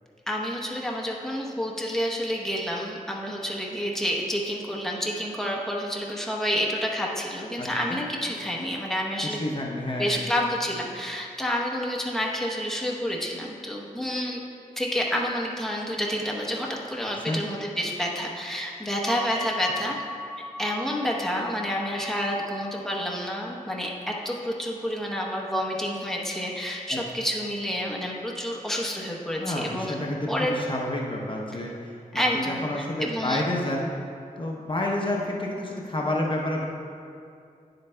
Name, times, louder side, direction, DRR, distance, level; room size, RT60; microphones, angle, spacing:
voice 1, 0.3-9.4 10.0-14.4 14.8-19.9 20.6-29.9 30.3-30.5 32.1-33.4, equal, 5° left, -2 dB, 0.9 m, -29 dB
voice 2, 7.6-8.0 9.2-10.1 17.3-17.4 29.4-33.9 34.4-36.6, left 1 dB, 35° left, -2 dB, 0.7 m, -29 dB
sound 1, 19.1-25.3, equal, 35° right, 1.1 m, -41 dB
9.5 x 7.8 x 2.2 m, 2.4 s
wide cardioid pair, 100°, 15 cm